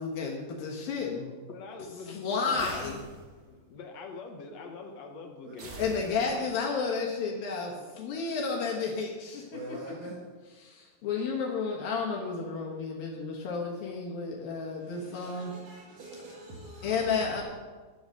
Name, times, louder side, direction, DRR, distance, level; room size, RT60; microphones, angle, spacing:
voice 1, 0.0-1.4 2.1-3.0 5.8-7.7 8.0-9.8 10.6-15.5 16.8-17.4, left 5 dB, 75° left, 3.2 m, -32 dB
voice 2, 1.5-2.2 2.5-3.0 3.4-6.5, left 4 dB, 60° left, 2.0 m, -44 dB
sound 1, 2.6-3.6 5.6-6.6, right 1 dB, 45° right, 1.4 m, -46 dB
voice 3, 5.4-5.9 9.5-10.2 14.8-17.3, right 2 dB, 60° right, 3.2 m, -44 dB
12.5 x 8.0 x 6.6 m
omnidirectional pair, 4.2 m